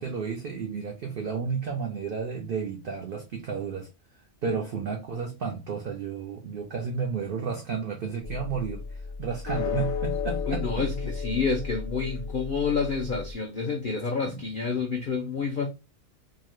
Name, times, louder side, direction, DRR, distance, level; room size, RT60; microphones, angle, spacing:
voice 1, 0.0-3.9 4.4-10.9 14.2-14.4, right 6 dB, 80° right, 0.4 m, -32 dB
sound 1, 8.2-13.3, left 5 dB, 60° left, 1.0 m, -33 dB
voice 2, 10.5-15.7, left 5 dB, 75° left, 0.4 m, -29 dB
2.7 x 2.1 x 2.9 m
omnidirectional pair, 1.5 m